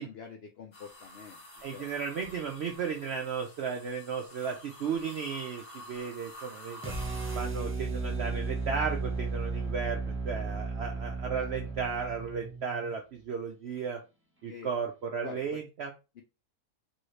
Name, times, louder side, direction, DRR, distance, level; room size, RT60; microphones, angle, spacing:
voice 1, 0.0-1.9 11.3-11.7 14.5-14.7 15.2-15.6, left 6 dB, 75° left, 2 dB, 0.5 m, -46 dB
sound 1, 0.7-7.4, equal, 30° left, 0.6 m, -49 dB
voice 2, 1.6-6.9 7.3-14.0 14.4-15.9, right 6 dB, 75° right, 3 dB, 0.6 m, -35 dB
sound 2, 6.8-13.0, right 3 dB, 20° right, 0.3 m, -34 dB
3.1 x 2.7 x 3.1 m, 0.29 s
omnidirectional pair, 1.6 m